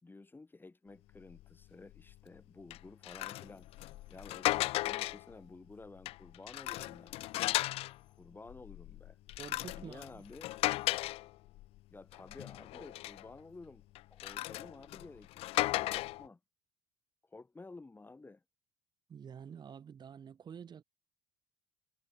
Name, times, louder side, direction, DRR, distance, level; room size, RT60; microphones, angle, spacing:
voice 1, 0.0-3.7 4.1-7.6 8.2-9.2 9.7-10.5 11.9-13.8 14.1-16.4 17.2-18.4, left 3 dB, 15° left, 4.0 m, -53 dB
sound 1, 1.3-1.5 1.9-2.2 2.7-5.3 5.8-8.0 8.5-11.8 12.1-13.3 13.9-16.3, left 17 dB, 50° left, 0.5 m, -36 dB
sound 2, 3.3-4.5 7.1-8.3 10.0-11.2, left 6 dB, 35° left, 6.5 m, -76 dB
voice 2, 9.4-10.2 19.1-20.8, right 7 dB, 35° right, 1.5 m, -48 dB
figure-of-eight pair, 60°, 13 cm